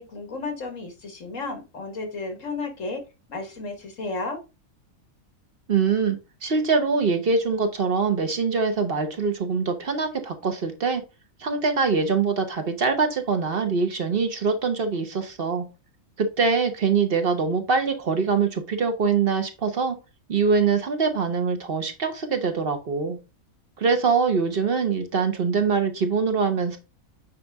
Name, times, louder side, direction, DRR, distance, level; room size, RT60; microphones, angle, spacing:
voice 1, 0.0-3.0 3.3-4.4, left 3 dB, 65° left, 5 dB, 2.0 m, -33 dB
voice 2, 5.7-11.0 11.4-15.6 16.2-20.0 20.3-23.2 23.8-26.8, right 5 dB, 45° right, 6 dB, 1.1 m, -23 dB
8.8 x 3.4 x 3.6 m, 0.28 s
omnidirectional pair, 1.4 m